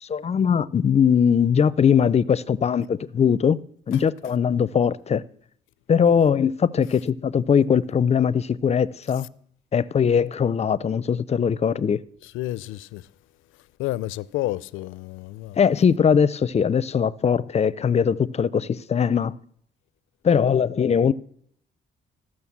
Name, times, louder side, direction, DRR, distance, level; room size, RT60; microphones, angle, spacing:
voice 1, 0.0-3.6 3.9-5.2 5.9-9.3 9.7-12.0 15.6-19.4 20.2-21.1, left 7 dB, 35° left, 0.5 m, -20 dB
voice 2, 12.2-13.1 13.8-15.6, left 16 dB, 90° left, 0.4 m, -30 dB
14.0 x 6.3 x 7.2 m
cardioid pair, 90°, 20 cm